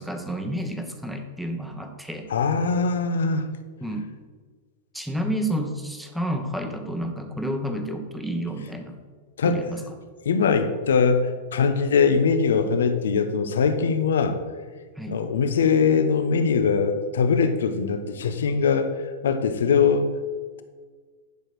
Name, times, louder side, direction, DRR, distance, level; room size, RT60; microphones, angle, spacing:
voice 1, 0.0-2.3 3.8-4.1 4.9-9.0 9.4-9.8 15.0-15.2, right 1 dB, ahead, 5 dB, 1.3 m, -30 dB
voice 2, 2.3-3.5 9.4-9.7 10.2-14.4 15.1-18.9 19.2-20.1, left 5 dB, 80° left, 9 dB, 1.0 m, -21 dB
11.0 x 5.0 x 6.2 m, 1.5 s
hypercardioid pair, 110°, 0 cm